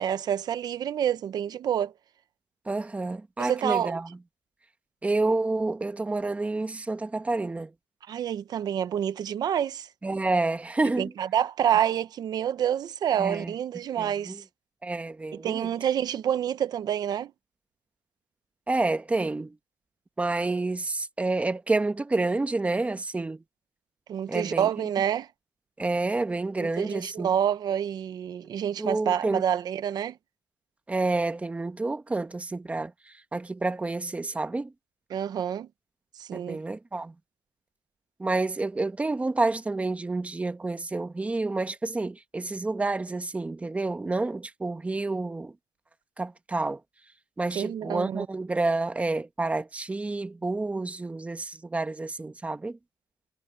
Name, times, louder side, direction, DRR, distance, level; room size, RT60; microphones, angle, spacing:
voice 1, 0.0-1.9 3.4-4.0 8.1-9.9 11.0-14.4 15.3-17.3 24.1-25.3 26.6-30.2 35.1-35.7 36.2-36.6 47.5-48.3, right 9 dB, 70° right, 0.9 m, -28 dB
voice 2, 2.7-4.1 5.0-7.7 10.0-11.1 13.2-13.5 14.0-14.4 14.8-15.7 18.7-19.5 20.2-23.4 24.3-24.9 25.8-27.3 28.8-29.4 30.9-34.7 36.3-37.1 38.2-45.5 46.2-46.8 47.4-52.8, right 2 dB, 20° right, 1.3 m, -29 dB
cardioid pair, 115°, 7 cm